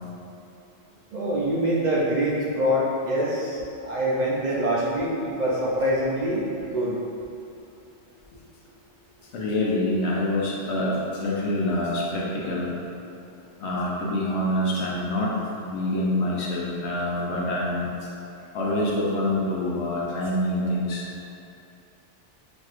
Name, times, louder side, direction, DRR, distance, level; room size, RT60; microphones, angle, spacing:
voice 1, 1.1-6.9, equal, 55° right, -6 dB, 0.5 m, -25 dB
voice 2, 9.3-12.8 13.6-15.3 15.6-17.9 18.5-21.1, left 1 dB, 70° left, -4 dB, 1.0 m, -26 dB
6.0 x 2.6 x 2.4 m, 2.7 s
omnidirectional pair, 1.2 m